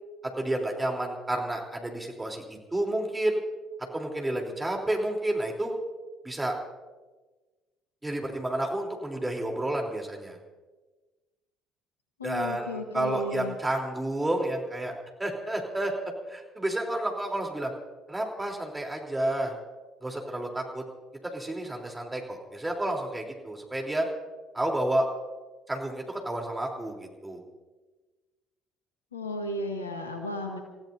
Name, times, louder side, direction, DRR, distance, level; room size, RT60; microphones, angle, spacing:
voice 1, 0.4-3.4 3.9-5.7 6.2-6.6 8.0-10.4 12.2-14.9 15.2-15.9 16.3-17.7 18.1-19.5 20.0-20.8 21.2-24.1 24.5-25.1 25.7-27.4, right 1 dB, 15° right, 1 dB, 3.6 m, -30 dB
voice 2, 12.2-13.5 29.1-30.6, left 1 dB, 90° left, 4 dB, 1.6 m, -34 dB
29.5 x 16.0 x 2.8 m, 1.3 s
hypercardioid pair, 55°, 0 cm